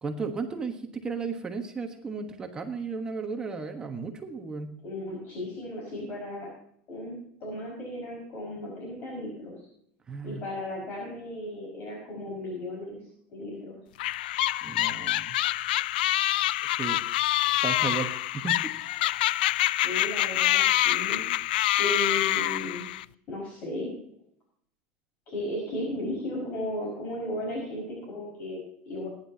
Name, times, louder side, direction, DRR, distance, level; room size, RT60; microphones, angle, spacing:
voice 1, 0.0-4.7 10.1-10.4 14.6-15.4 16.7-17.0 17.5-18.7, right 4 dB, 15° right, 4 dB, 1.2 m, -34 dB
voice 2, 4.8-6.5 6.9-7.2 7.4-9.6 10.2-13.0 13.3-13.8 19.8-21.2 21.8-22.9 23.3-23.9 25.3-29.1, left 1 dB, 40° left, -2 dB, 5.4 m, -35 dB
sound 1, 14.0-23.1, left 15 dB, 90° left, 0.3 m, -26 dB
21.5 x 10.5 x 2.8 m, 0.68 s
supercardioid pair, 150°, 5 cm